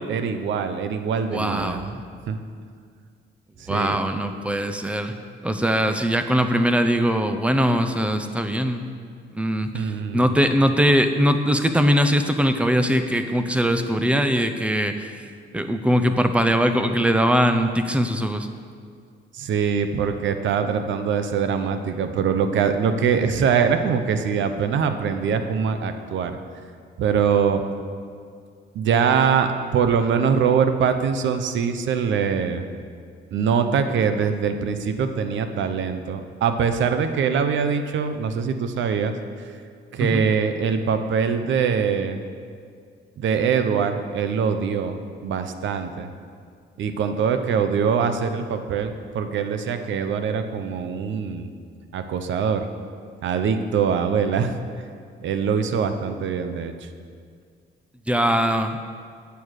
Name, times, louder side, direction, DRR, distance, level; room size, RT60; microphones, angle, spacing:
voice 1, 0.1-1.9 2.3-2.4 3.6-4.0 9.7-10.4 19.3-26.4 27.0-27.6 28.7-32.7 33.3-39.1 39.9-42.2 43.2-46.1 46.8-51.5 51.9-52.6 53.2-54.5 55.2-56.7, right 6 dB, 70° right, 8 dB, 0.8 m, -23 dB
voice 2, 1.3-2.0 3.7-5.1 5.4-8.8 9.3-15.2 15.5-18.5 40.0-40.3 58.1-58.8, equal, 5° right, 8 dB, 0.6 m, -21 dB
9.1 x 7.0 x 6.4 m, 2.1 s
cardioid pair, 110°, 20 cm